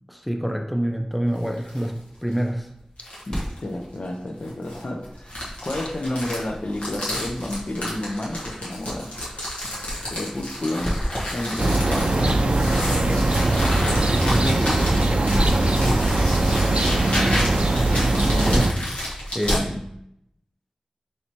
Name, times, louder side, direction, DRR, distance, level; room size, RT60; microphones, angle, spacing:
voice 1, 0.1-2.7 14.2-14.8 18.3-18.8 19.3-19.9, equal, ahead, 3 dB, 0.5 m, -26 dB
sound 1, 1.1-19.8, equal, 35° left, 1.3 m, -37 dB
sound 2, 1.3-1.9 2.3-2.4 3.0-3.6 4.4-19.6, equal, 85° left, 1.1 m, -30 dB
voice 2, 3.3-5.3 5.6-9.1 10.1-10.9 11.3-13.5 15.3-15.8, left 1 dB, 65° left, 3 dB, 0.5 m, -31 dB
sound 3, 11.6-18.7, right 2 dB, 65° right, 0.4 m, -21 dB
3.2 x 2.7 x 4.4 m, 0.77 s
wide cardioid pair, 60°, 2 cm